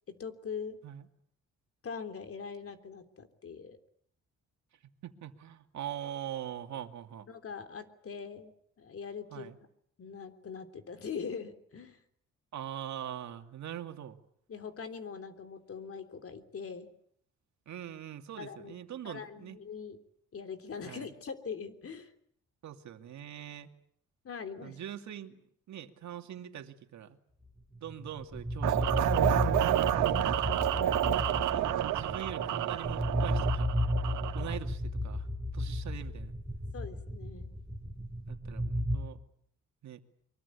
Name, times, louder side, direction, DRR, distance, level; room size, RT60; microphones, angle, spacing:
voice 1, 0.2-0.8 1.8-3.8 7.3-9.5 10.0-12.0 14.5-16.9 18.4-18.7 19.0-20.0 20.3-22.1 24.2-24.8 36.7-37.5, left 6 dB, 50° left, 8 dB, 3.5 m, -42 dB
voice 2, 5.0-7.3 9.3-9.6 12.5-14.2 17.7-19.6 20.8-21.1 22.6-23.7 24.6-25.4 25.7-27.2 27.8-29.4 30.3-30.4 31.5-31.7 31.9-33.7 34.3-35.3 35.5-36.3 38.3-39.2 39.8-40.0, right 10 dB, 65° right, 6 dB, 2.6 m, -42 dB
sound 1, 27.9-39.0, left 1 dB, ahead, 4.7 m, -33 dB
sound 2, 28.6-34.6, right 12 dB, 90° right, 1.6 m, -29 dB
24.0 x 23.5 x 8.4 m, 0.68 s
cardioid pair, 90°, 30 cm